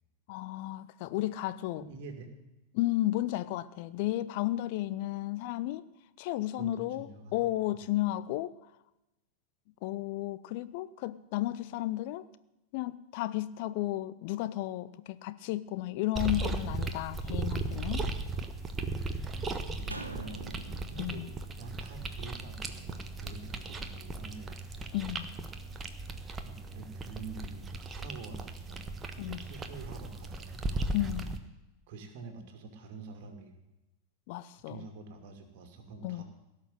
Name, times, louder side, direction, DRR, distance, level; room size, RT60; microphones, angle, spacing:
voice 1, 0.3-1.9 2.7-5.8 6.2-8.5 9.8-12.3 12.7-18.1 21.0-21.3 24.9-25.3 29.2-29.4 30.9-31.4 34.3-34.8 36.0-36.2, left 15 dB, 50° left, 15 dB, 0.6 m, -33 dB
voice 2, 1.7-2.4 6.6-7.8 19.3-21.3 21.6-24.6 26.4-28.8 29.1-31.0 31.9-33.5 34.5-36.2, right 4 dB, 50° right, 5 dB, 2.7 m, -47 dB
sound 1, 16.1-31.4, right 2 dB, 20° right, 1.2 m, -37 dB
sound 2, 19.9-23.2 23.5-23.6, right 2 dB, 80° right, 1.2 m, -46 dB
17.5 x 6.6 x 9.2 m, 0.96 s
figure-of-eight pair, 90°, 0 cm